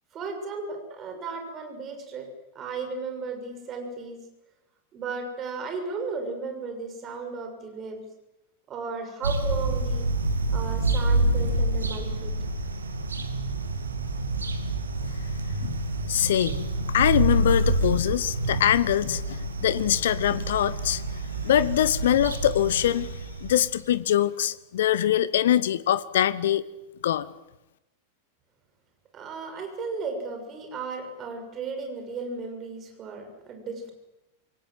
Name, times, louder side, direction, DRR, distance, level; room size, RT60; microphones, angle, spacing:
voice 1, 0.1-2.3 2.5-4.2 4.9-8.0 8.7-10.1 10.5-12.3 29.1-33.9, right 4 dB, 30° right, 5 dB, 6.8 m, -35 dB
sound 1, 9.2-23.8, right 2 dB, 75° right, 2.7 m, -28 dB
voice 2, 16.1-21.0 21.4-23.1 23.4-26.6 27.0-27.3, left 11 dB, 60° left, 18 dB, 1.0 m, -23 dB
27.0 x 22.5 x 7.8 m, 0.97 s
figure-of-eight pair, 90°, 0 cm